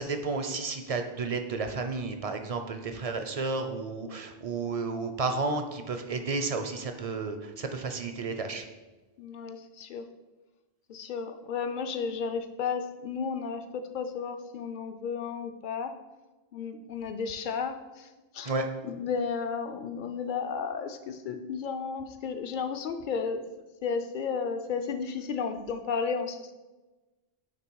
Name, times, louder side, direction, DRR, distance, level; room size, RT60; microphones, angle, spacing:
voice 1, 0.0-8.6 18.4-18.7, right 3 dB, 45° right, 6 dB, 0.6 m, -32 dB
voice 2, 9.2-10.1 10.9-16.0 16.5-18.5 18.8-23.4 23.8-26.5, left 5 dB, 55° left, 7 dB, 0.7 m, -33 dB
9.2 x 3.3 x 4.6 m, 1.2 s
omnidirectional pair, 1.1 m